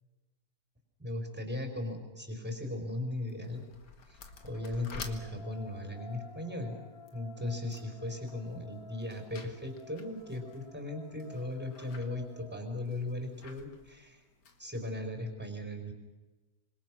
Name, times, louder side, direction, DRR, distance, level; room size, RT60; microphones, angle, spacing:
voice 1, 1.0-3.6 4.1-4.2 4.4-6.8 7.1-14.2 14.6-15.9, left 1 dB, 5° right, 5 dB, 4.7 m, -37 dB
sound 1, 3.1-14.9, left 5 dB, 70° left, 2.5 m, -52 dB
sound 2, 4.2-13.4, left 3 dB, 20° left, 1.4 m, -53 dB
26.5 x 25.5 x 6.3 m, 1.2 s
omnidirectional pair, 1.9 m